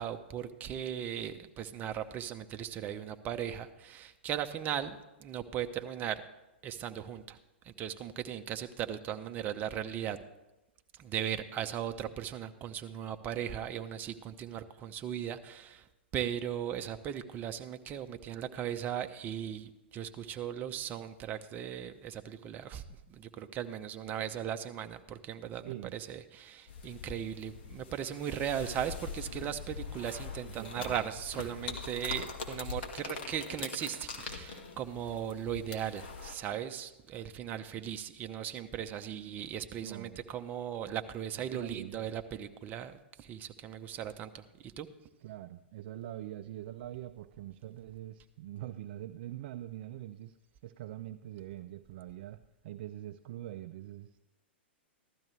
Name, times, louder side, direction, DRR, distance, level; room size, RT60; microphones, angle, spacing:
voice 1, 0.0-6.2 6.6-7.4 7.6-10.2 10.9-15.9 16.1-44.9, right 9 dB, 30° right, 8 dB, 0.8 m, -38 dB
sound 1, 26.7-36.4, left 5 dB, 60° left, 1.7 m, -43 dB
voice 2, 30.6-31.1 39.8-40.2 41.4-42.0 45.2-50.4 50.6-54.2, right 13 dB, 55° right, 10 dB, 0.4 m, -44 dB
15.0 x 12.0 x 3.3 m, 0.99 s
hypercardioid pair, 110°, 6 cm